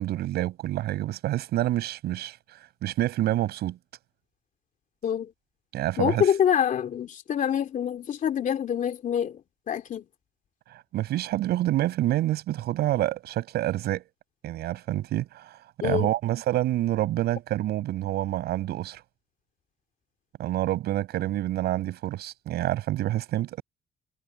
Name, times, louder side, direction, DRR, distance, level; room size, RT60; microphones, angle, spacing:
voice 1, 0.0-2.4 2.8-3.8 5.7-6.3 10.9-14.1 14.4-15.5 15.8-19.0 20.4-23.6, right 14 dB, 75° right, 7.3 m, -27 dB
voice 2, 6.0-9.4 9.7-10.0 15.8-16.1, left 9 dB, 50° left, 2.8 m, -26 dB
cardioid pair, 110°, 17 cm